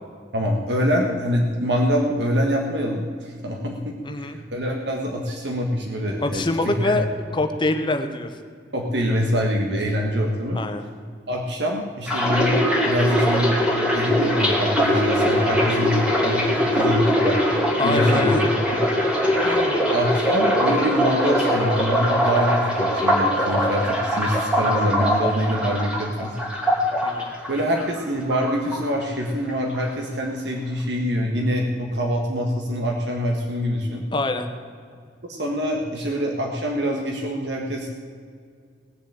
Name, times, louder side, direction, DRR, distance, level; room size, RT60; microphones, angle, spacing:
voice 1, 0.3-7.0 8.7-10.6 11.3-13.7 13.9-17.4 17.8-18.4 18.7-18.8 19.9-26.3 27.5-34.0 35.2-37.9, equal, 70° right, 0 dB, 1.6 m, -25 dB
voice 2, 4.0-4.4 6.2-7.1 7.3-8.3 10.5-10.8 17.8-18.5 19.4-19.8 27.0-27.3 34.1-34.5, left 2 dB, 25° left, 6 dB, 1.1 m, -24 dB
sound 1, 12.1-28.0 28.3-29.2 29.5-29.8, equal, 5° right, 2.8 m, -22 dB
18.5 x 7.1 x 8.8 m, 2.1 s
head